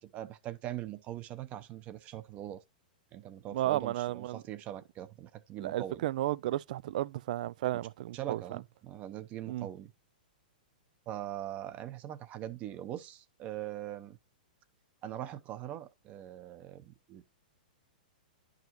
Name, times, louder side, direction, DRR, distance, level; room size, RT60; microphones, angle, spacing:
voice 1, 0.0-2.6 3.1-6.1 8.1-9.9 11.1-14.2 15.0-17.2, right 12 dB, 30° right, 0.8 m, -42 dB
voice 2, 3.5-4.4 5.6-8.6 9.5-9.7, right 14 dB, 55° right, 0.3 m, -33 dB
10.5 x 5.0 x 3.0 m
hypercardioid pair, 145°, 5 cm